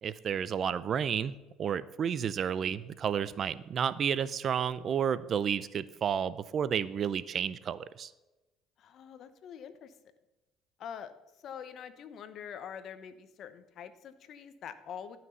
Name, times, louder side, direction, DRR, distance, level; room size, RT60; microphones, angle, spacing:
voice 1, 0.0-1.3 1.6-8.1, right 8 dB, 45° right, 17 dB, 0.5 m, -31 dB
voice 2, 8.8-9.9 10.8-11.1 11.4-15.2, left 8 dB, 55° left, 12 dB, 0.9 m, -45 dB
12.5 x 5.9 x 5.5 m, 1.0 s
cardioid pair, 105°, 0 cm